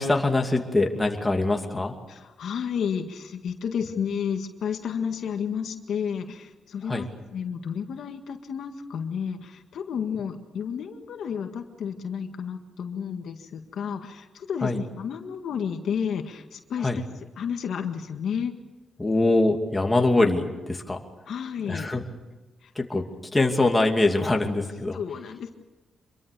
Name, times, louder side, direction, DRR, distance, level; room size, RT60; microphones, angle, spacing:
voice 1, 0.0-1.9 6.9-7.1 14.6-14.8 16.8-17.0 19.0-21.0 21.7-22.0 22.8-23.0 23.3-25.0, left 2 dB, 15° left, 2 dB, 2.6 m, -23 dB
voice 2, 2.1-17.1 17.4-18.5 21.3-21.9 22.6-22.7 24.9-25.5, left 7 dB, 70° left, 5 dB, 1.8 m, -31 dB
26.0 x 23.0 x 6.9 m, 1.1 s
cardioid pair, 125°, 0 cm